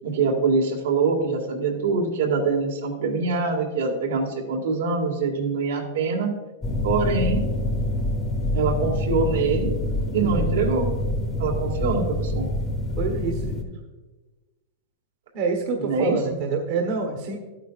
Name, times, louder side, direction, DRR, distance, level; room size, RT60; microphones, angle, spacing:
voice 1, 0.0-6.3 6.8-7.4 8.5-9.7 10.1-10.9 11.4-12.5 15.8-16.4, right 4 dB, 80° right, 1 dB, 2.0 m, -24 dB
sound 1, 6.6-13.6, left 1 dB, 15° left, 1.0 m, -26 dB
voice 2, 13.0-13.7 15.3-17.4, right 4 dB, 45° right, 2 dB, 1.2 m, -27 dB
12.0 x 9.1 x 2.5 m, 1.2 s
supercardioid pair, 160°, 0 cm